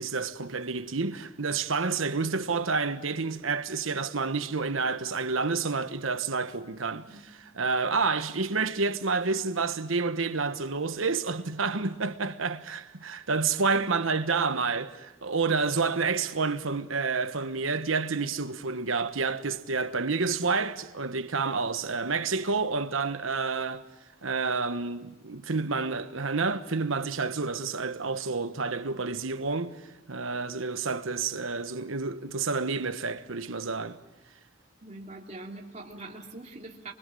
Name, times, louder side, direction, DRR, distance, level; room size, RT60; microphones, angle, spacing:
voice 1, 0.0-7.1 7.5-23.8 24.2-29.8 30.1-34.0, right 4 dB, 85° right, 1.2 m, -29 dB
voice 2, 34.8-36.9, right 2 dB, 35° right, 3.0 m, -43 dB
24.5 x 24.0 x 7.7 m
head